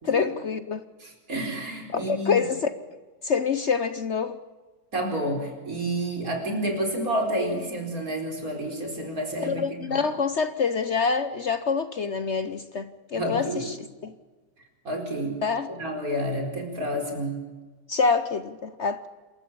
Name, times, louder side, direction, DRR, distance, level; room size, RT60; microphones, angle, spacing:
voice 1, 0.0-0.8 1.9-2.7 3.2-4.4 9.4-13.7 14.0-14.1 15.4-15.7 17.9-19.1, left 5 dB, 50° left, 12 dB, 1.0 m, -26 dB
voice 2, 1.0-2.5 4.9-10.0 13.1-13.7 14.9-15.4 15.7-17.4, right 1 dB, 60° right, 3 dB, 5.1 m, -29 dB
27.0 x 14.0 x 8.6 m, 1.3 s
omnidirectional pair, 1.7 m